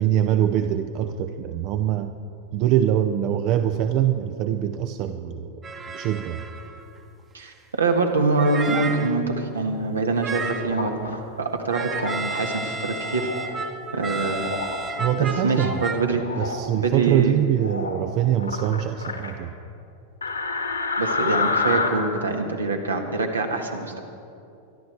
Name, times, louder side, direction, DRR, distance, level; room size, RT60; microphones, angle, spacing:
voice 1, 0.0-2.1 2.5-5.6 5.9-6.4 15.0-15.8 16.4-19.5, right 11 dB, 40° right, 9 dB, 0.6 m, -23 dB
sound 1, 5.6-7.0 7.4-7.5 8.4-9.2 10.2-10.8 11.7-16.0, right 4 dB, 20° right, 1.1 m, -32 dB
voice 2, 7.3-13.3 13.9-14.5 15.4-16.2 16.8-17.4 21.0-24.0, right 3 dB, 75° right, 4 dB, 1.6 m, -24 dB
sound 2, 10.6-11.2 11.9-12.2 12.9-13.5 14.4-14.8 15.2-15.8 16.1-16.6 17.6-18.0 18.4-19.3 20.2-21.9, left 4 dB, 80° left, 1.9 m, -28 dB
24.5 x 11.5 x 4.5 m, 2.6 s
figure-of-eight pair, 90°, 0 cm